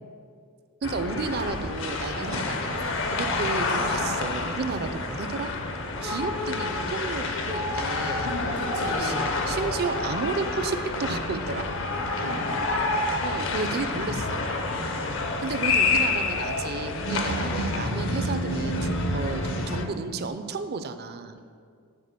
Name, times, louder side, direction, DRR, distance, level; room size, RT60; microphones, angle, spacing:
sound 1, 0.8-19.8, left 2 dB, 60° left, 0.7 m, -28 dB
voice 1, 0.8-5.5 6.0-8.3 9.0-9.1 9.5-11.7 13.2-14.5 15.4-21.4, right 4 dB, 45° right, 9 dB, 0.5 m, -32 dB
voice 2, 2.1-2.5 3.2-3.4 8.2-9.3 12.2-12.6 14.7-15.2, equal, 85° right, -1 dB, 1.9 m, -36 dB
9.6 x 4.3 x 6.6 m, 2.2 s
head